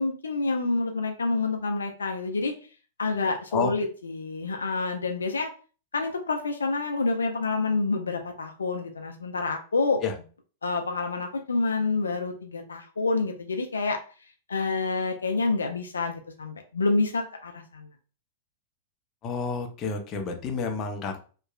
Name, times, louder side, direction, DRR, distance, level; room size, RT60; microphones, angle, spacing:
voice 1, 0.0-2.5 3.0-5.5 5.9-10.0 10.6-14.0 14.5-17.9, left 3 dB, 80° left, 4 dB, 0.4 m, -28 dB
voice 2, 19.2-21.2, left 5 dB, 35° left, 4 dB, 0.6 m, -29 dB
2.9 x 2.3 x 2.3 m, 0.38 s
figure-of-eight pair, 100°, 0 cm